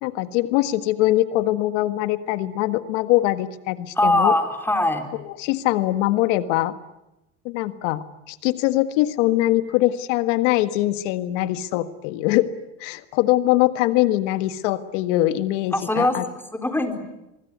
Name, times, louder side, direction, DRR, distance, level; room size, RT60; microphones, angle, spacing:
voice 1, 0.0-4.3 5.2-6.7 7.4-12.5 12.8-16.2, left 16 dB, 80° left, 11 dB, 1.7 m, -22 dB
voice 2, 4.0-5.1 15.7-16.2 16.5-17.0, left 1 dB, 5° left, 6 dB, 3.8 m, -21 dB
24.5 x 22.5 x 9.5 m, 0.92 s
supercardioid pair, 120°, 36 cm